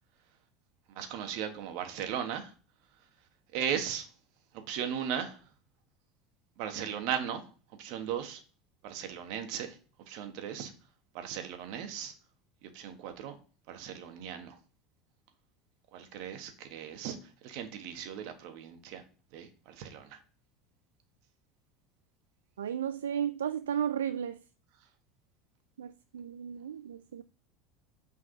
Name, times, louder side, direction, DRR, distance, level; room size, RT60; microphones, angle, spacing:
voice 1, 0.9-2.5 3.5-4.1 4.5-5.4 6.6-7.4 7.8-8.4 8.8-9.8 10.1-10.7 11.1-12.1 12.7-13.3 13.7-14.6 15.9-19.0 19.3-20.2, right 9 dB, 60° right, 1.5 m, -37 dB
voice 2, 22.6-24.4 25.8-27.2, right 9 dB, 80° right, 0.3 m, -34 dB
6.2 x 4.7 x 5.8 m
hypercardioid pair, 75°, 0 cm